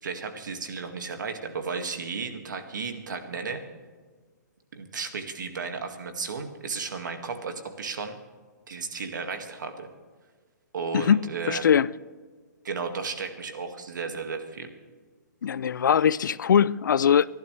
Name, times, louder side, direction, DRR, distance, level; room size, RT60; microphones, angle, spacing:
voice 1, 0.0-3.6 4.7-8.2 8.7-9.9 10.7-11.6 12.6-14.7, right 4 dB, 80° right, 2.1 m, -34 dB
voice 2, 10.9-11.9 15.4-17.3, left 8 dB, 85° left, 0.5 m, -21 dB
25.5 x 11.5 x 3.3 m
hypercardioid pair, 180°, 10 cm